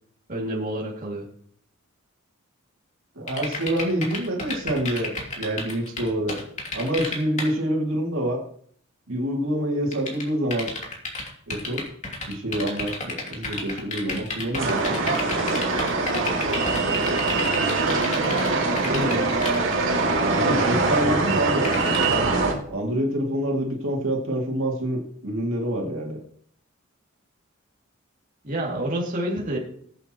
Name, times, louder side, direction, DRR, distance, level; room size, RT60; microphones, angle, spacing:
voice 1, 0.3-1.3 18.2-19.2 28.4-29.6, right 1 dB, 40° right, -3 dB, 2.6 m, -29 dB
voice 2, 3.2-6.4 6.7-8.4 9.1-10.7 11.5-11.8 12.3-15.5 20.2-22.1 22.7-26.2, right 1 dB, 85° right, -1 dB, 2.7 m, -27 dB
sound 1, 3.3-7.5 9.9-18.5 18.8-19.6 20.9-21.0 21.6-22.1, left 3 dB, 35° left, 2.7 m, -31 dB
sound 2, 14.6-22.5, right 3 dB, 65° right, 2.3 m, -23 dB
20.5 x 8.3 x 3.1 m, 0.62 s
head